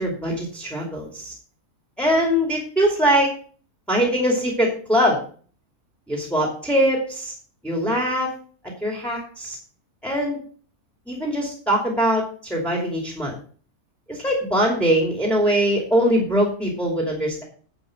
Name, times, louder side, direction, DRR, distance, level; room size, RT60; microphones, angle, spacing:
voice 1, 0.0-1.3 2.0-3.3 3.9-5.2 6.1-7.3 7.6-8.3 8.8-9.6 10.0-10.4 11.1-13.4 14.1-17.4, equal, ahead, 0 dB, 2.6 m, -22 dB
9.5 x 5.3 x 7.8 m, 0.43 s
omnidirectional pair, 1.6 m